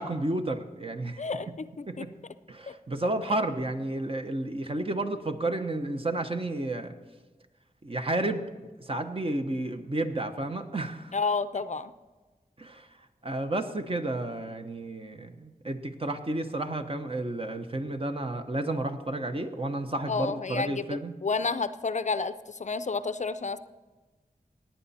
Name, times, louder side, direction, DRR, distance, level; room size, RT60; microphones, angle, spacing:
voice 1, 0.0-1.2 1.9-2.1 2.5-6.9 7.8-8.5 8.8-11.1 12.6-12.9 13.2-21.1, right 2 dB, 40° right, 6 dB, 1.0 m, -31 dB
voice 2, 1.2-2.1 11.1-11.9 20.1-23.6, left 4 dB, 50° left, 13 dB, 0.5 m, -30 dB
17.5 x 9.2 x 4.3 m, 1.3 s
wide cardioid pair, 75°, 15 cm